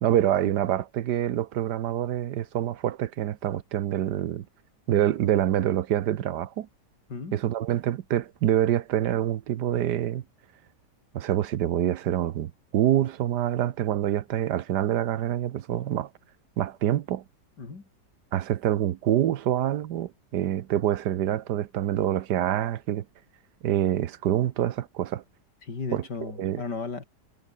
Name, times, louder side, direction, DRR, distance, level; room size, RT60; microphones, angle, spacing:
voice 1, 0.0-4.5 4.9-6.7 7.3-10.2 11.1-16.1 16.6-17.2 18.3-23.0 23.6-25.2 25.9-26.0 26.4-26.6, right 11 dB, 80° right, 1.4 m, -26 dB
voice 2, 7.1-7.4 17.6-17.9 25.6-27.0, left 4 dB, 80° left, 4.0 m, -35 dB
omnidirectional pair, 1.8 m